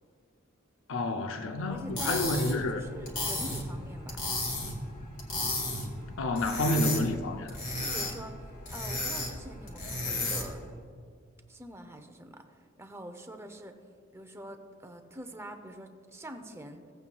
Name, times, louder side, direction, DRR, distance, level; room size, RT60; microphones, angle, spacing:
voice 1, 0.9-2.9 6.2-7.5, left 1 dB, 65° left, 0.6 m, -29 dB
voice 2, 1.7-4.2 7.8-8.4 8.7-10.7 11.5-12.5 12.8-13.8 14.1-16.8, right 1 dB, 15° right, 0.6 m, -45 dB
sound 1, 1.8-10.7, left 2 dB, 40° left, 2.0 m, -34 dB
16.5 x 8.3 x 2.3 m
head